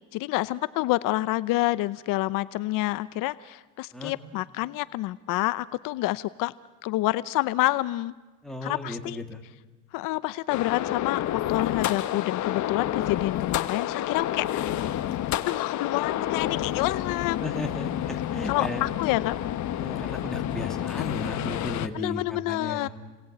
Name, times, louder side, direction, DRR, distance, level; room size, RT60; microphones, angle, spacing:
voice 1, 0.1-6.5 6.8-8.1 8.6-9.2 9.9-14.7 15.4-17.4 18.5-19.4 21.0-21.1 21.9-22.9, left 18 dB, 85° left, 16 dB, 0.8 m, -28 dB
voice 2, 8.4-9.4 17.4-18.9 19.7-22.9, left 1 dB, ahead, 3 dB, 3.4 m, -35 dB
sound 1, 10.5-21.9, left 12 dB, 60° left, 1.3 m, -29 dB
29.5 x 21.0 x 8.7 m, 1.2 s
cardioid pair, 115°, 32 cm